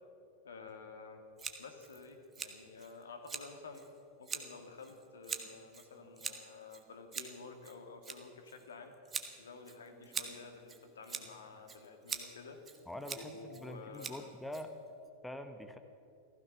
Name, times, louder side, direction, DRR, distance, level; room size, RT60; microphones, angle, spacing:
voice 1, 0.4-1.2 1.6-3.8 4.2-8.9 9.4-12.6 13.1-14.3, left 4 dB, 65° left, 5 dB, 1.9 m, -51 dB
Scissors, 1.4-15.1, right 6 dB, 20° right, 1.3 m, -46 dB
voice 2, 12.9-14.8 15.2-15.8, left 1 dB, 5° left, 7 dB, 1.0 m, -44 dB
15.5 x 15.0 x 5.9 m, 2.5 s
figure-of-eight pair, 90°, 0 cm